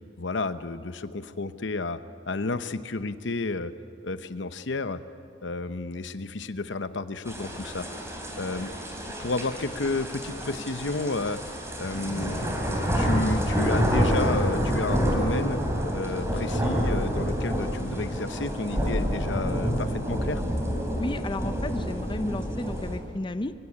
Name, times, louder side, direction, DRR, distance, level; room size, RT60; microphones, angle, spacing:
voice 1, 0.2-2.0 2.3-3.7 4.0-5.0 5.4-7.9 8.4-8.7 9.2-11.4 11.8-12.4 12.9-15.6 15.9-20.4, left 3 dB, 70° left, 11 dB, 0.9 m, -31 dB
sound 1, 7.3-23.0, equal, 15° right, 3.7 m, -28 dB
voice 2, 21.0-23.5, left 2 dB, 25° left, 10 dB, 0.6 m, -33 dB
24.5 x 16.0 x 9.7 m, 2.6 s
head